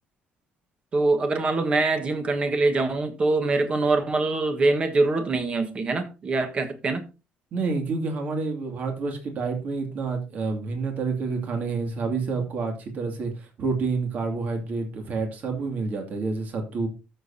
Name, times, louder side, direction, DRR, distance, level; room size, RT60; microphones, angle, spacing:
voice 1, 0.9-7.0, right 3 dB, 30° right, 1.4 m, -24 dB
voice 2, 7.5-16.9, right 4 dB, 50° right, 2.5 m, -28 dB
13.5 x 6.9 x 2.8 m
cardioid pair, 150°, 4 cm